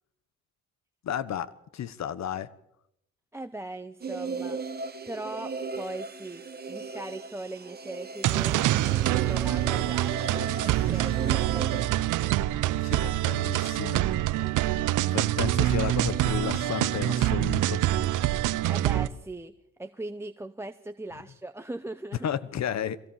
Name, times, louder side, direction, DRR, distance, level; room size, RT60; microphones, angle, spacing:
voice 1, 1.0-2.5 10.8-11.4 12.8-14.1 15.1-18.0 22.2-23.0, left 9 dB, 65° left, 17 dB, 1.2 m, -33 dB
voice 2, 3.3-4.6 5.1-12.4 18.7-19.5 19.8-22.3, right 2 dB, 10° right, 8 dB, 0.8 m, -40 dB
sound 1, 4.0-11.9, right 4 dB, 30° right, 1.4 m, -37 dB
sound 2, 8.2-19.1, right 14 dB, 90° right, 0.9 m, -25 dB
23.0 x 17.0 x 7.5 m, 0.81 s
cardioid pair, 90°, 30 cm